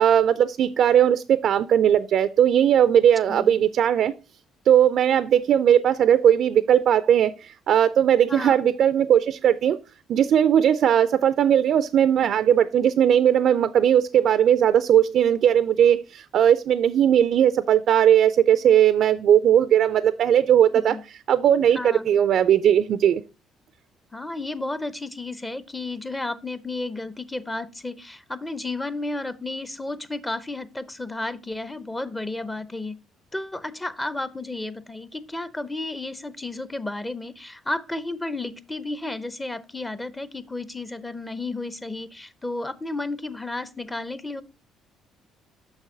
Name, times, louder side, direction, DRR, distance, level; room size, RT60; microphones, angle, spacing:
voice 1, 0.0-4.1 4.7-9.8 10.1-21.0 21.3-23.2, right 9 dB, 60° right, 0.4 m, -18 dB
voice 2, 3.3-3.6 8.3-8.6 20.7-21.0 21.7-22.2 24.1-32.9 33.3-44.4, left 2 dB, 15° left, 0.7 m, -32 dB
6.4 x 5.8 x 3.8 m
hypercardioid pair, 60°, 0 cm